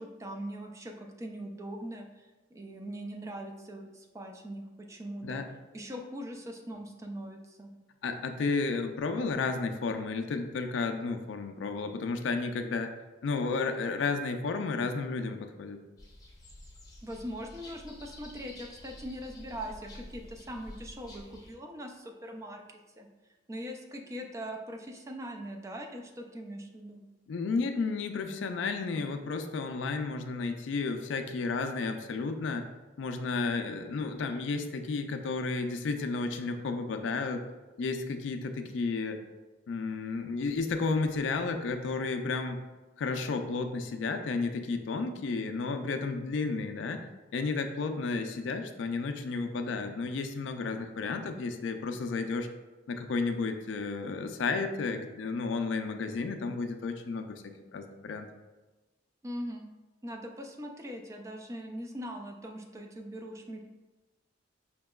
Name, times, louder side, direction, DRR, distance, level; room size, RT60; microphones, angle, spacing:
voice 1, 0.0-5.4 5.7-7.7 17.0-23.1 23.5-27.0 59.2-59.7 60.0-63.6, equal, 15° right, 3 dB, 0.3 m, -41 dB
voice 2, 8.0-12.9 13.2-15.8 27.3-32.6 33.0-37.4 37.8-39.2 39.7-42.6 43.0-47.1 47.3-52.5 52.9-58.3, left 4 dB, 80° left, 6 dB, 0.4 m, -32 dB
sound 1, 16.0-21.5, left 1 dB, 20° left, 0.6 m, -49 dB
5.2 x 2.8 x 2.3 m, 1.2 s
head